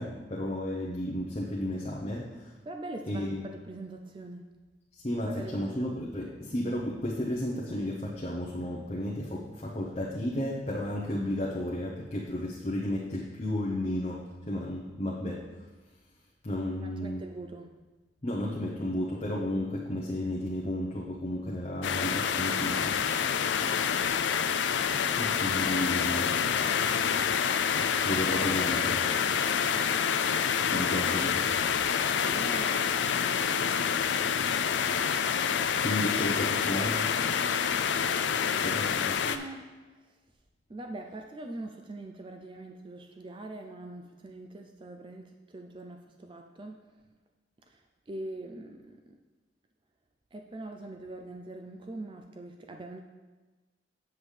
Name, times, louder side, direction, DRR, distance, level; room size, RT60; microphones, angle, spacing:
voice 1, 0.0-2.5 3.1-3.4 4.9-15.4 16.4-17.2 18.2-23.3 25.2-26.4 27.5-29.0 30.7-31.5 35.8-37.1 38.6-39.2, left 1 dB, 35° left, -4 dB, 0.8 m, -33 dB
voice 2, 2.6-4.4 5.3-5.9 16.8-17.7 24.9-25.4 30.9-31.5 32.2-34.2 39.2-39.7 40.0-40.1 40.7-46.8 47.7-49.2 50.3-53.0, right 2 dB, 30° right, 4 dB, 0.4 m, -43 dB
sound 1, 21.8-39.4, left 7 dB, 85° left, 0.4 m, -27 dB
8.0 x 7.2 x 3.3 m, 1.3 s
head